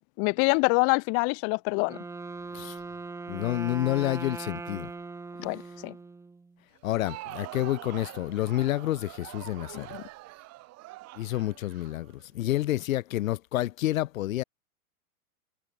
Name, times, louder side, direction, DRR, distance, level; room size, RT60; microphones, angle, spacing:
voice 1, 0.2-2.0 5.4-5.9 9.7-10.0, left 37 dB, 35° left, 0.8 m, -26 dB
Wind instrument woodwind instrument, 1.7-6.6, right 3 dB, 5° right, 1.1 m, -40 dB
voice 2, 3.3-4.9 6.8-10.0 11.2-14.4, left 15 dB, 65° left, 0.9 m, -29 dB
Crowd, 6.8-12.7, right 18 dB, 35° right, 6.6 m, -45 dB
hypercardioid pair, 120°, 44 cm